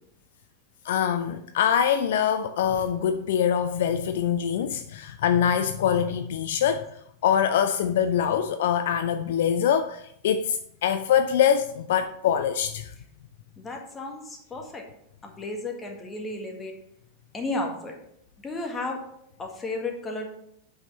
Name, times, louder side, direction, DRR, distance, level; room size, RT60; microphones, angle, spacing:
voice 1, 0.8-12.9, left 8 dB, 55° left, 0.3 m, -24 dB
voice 2, 13.6-14.8 15.2-16.7 17.3-17.9 18.4-19.0 19.4-20.3, left 2 dB, 15° left, 1.6 m, -33 dB
8.1 x 5.7 x 4.1 m
figure-of-eight pair, 90°, 0 cm